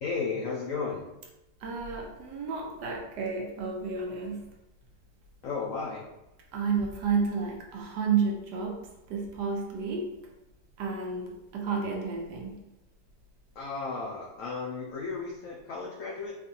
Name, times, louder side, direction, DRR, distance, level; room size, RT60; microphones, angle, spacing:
voice 1, 0.0-1.0 5.4-6.0 13.6-16.3, left 4 dB, 80° left, -2 dB, 0.7 m, -34 dB
voice 2, 1.6-4.4 6.5-8.8 9.1-10.1 10.8-12.5, right 5 dB, 70° right, 0 dB, 1.2 m, -31 dB
4.3 x 2.5 x 2.7 m, 0.95 s
omnidirectional pair, 2.0 m